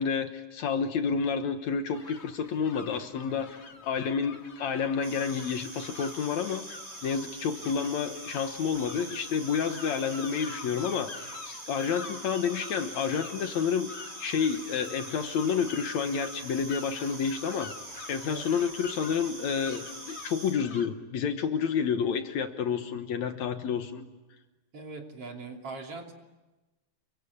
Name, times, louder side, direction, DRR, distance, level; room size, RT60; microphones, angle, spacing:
voice 1, 0.0-13.9 14.2-17.7 18.1-24.0, left 6 dB, 65° left, 8 dB, 2.5 m, -30 dB
sound 1, 1.9-20.9, left 4 dB, 40° left, 0.9 m, -46 dB
voice 2, 3.1-3.4 7.6-7.7 18.2-18.4 24.7-26.1, right 3 dB, 50° right, 2 dB, 3.8 m, -41 dB
sound 2, 5.0-20.5, right 2 dB, 90° right, 9.3 m, -44 dB
29.5 x 23.5 x 8.5 m, 1.1 s
omnidirectional pair, 3.6 m